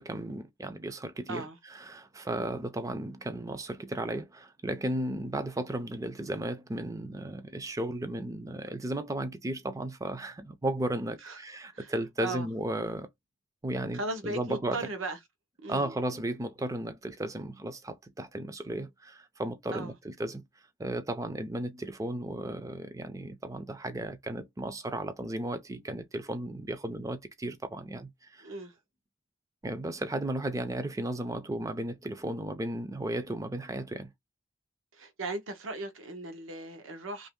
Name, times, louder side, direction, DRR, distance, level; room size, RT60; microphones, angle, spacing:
voice 1, 0.0-13.1 13.6-14.8 15.7-20.4 20.8-28.5 29.6-34.1, right 1 dB, 15° right, 0.4 m, -35 dB
voice 2, 13.9-15.2 15.6-16.0 19.7-20.0 28.4-28.7 34.9-37.3, right 2 dB, 80° right, 0.9 m, -37 dB
3.0 x 2.6 x 3.5 m
head